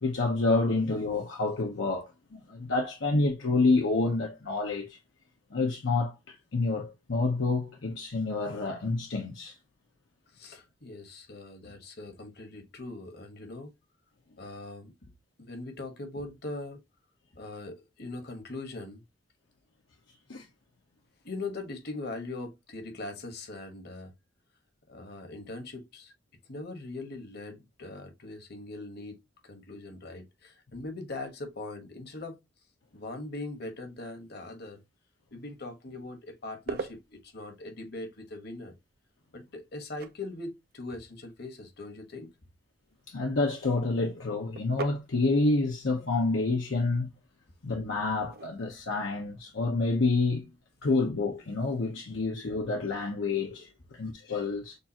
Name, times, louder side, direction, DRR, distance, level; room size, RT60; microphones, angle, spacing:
voice 1, 0.0-5.0 5.5-9.6 20.3-20.5 43.1-47.1 47.6-50.5 50.8-54.8, left 3 dB, 75° left, 0.8 m, -28 dB
voice 2, 10.3-13.7 14.4-14.9 15.4-16.8 17.3-19.0 21.2-24.1 24.9-26.1 26.5-29.2 29.4-32.4 32.9-34.8 35.3-38.7 39.3-42.3, left 2 dB, 55° left, 1.2 m, -41 dB
sound 1, 35.8-50.9, right 3 dB, 50° right, 0.5 m, -47 dB
6.6 x 2.5 x 2.7 m
head